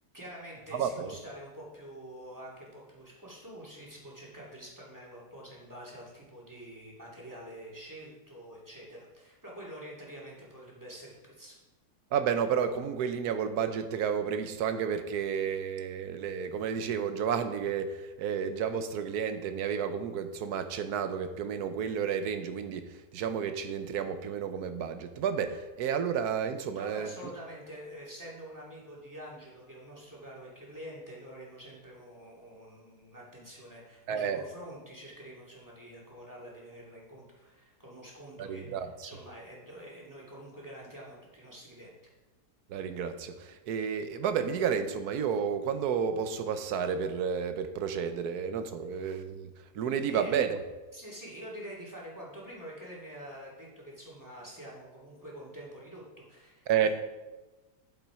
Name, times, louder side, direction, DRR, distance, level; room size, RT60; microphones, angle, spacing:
voice 1, 0.1-11.6 26.7-41.9 49.9-50.4 50.9-56.9, equal, 10° right, -5 dB, 2.4 m, -47 dB
voice 2, 0.7-1.1 12.1-27.3 34.1-34.5 38.4-39.1 42.7-50.6 56.7-56.9, right 7 dB, 70° right, 9 dB, 1.2 m, -31 dB
9.1 x 7.2 x 4.8 m, 1.1 s
omnidirectional pair, 1.8 m